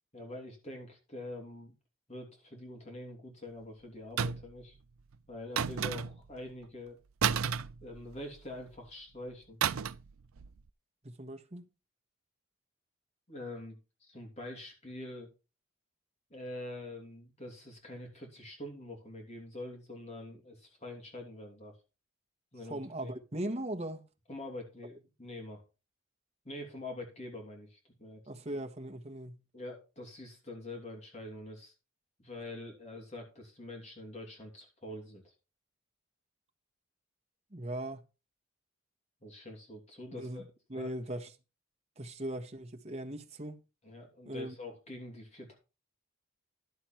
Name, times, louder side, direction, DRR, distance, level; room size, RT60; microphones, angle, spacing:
voice 1, 0.1-1.7 2.1-4.8 5.3-7.0 7.8-9.6 13.3-15.3 16.3-21.8 22.5-23.1 24.3-25.6 26.4-28.2 29.5-31.7 32.2-35.3 39.2-40.5 40.8-40.9 43.8-45.6, left 1 dB, 30° left, 2.9 m, -45 dB
sound 1, 4.2-4.6 5.6-6.3 7.2-8.4 9.6-10.1 10.4-10.6, right 7 dB, 80° right, 0.5 m, -32 dB
voice 2, 11.0-11.6 22.7-24.0 28.3-29.4 37.5-38.0 40.1-41.3 42.0-43.6 44.3-44.5, right 1 dB, 30° right, 1.3 m, -39 dB
12.0 x 7.1 x 4.5 m
head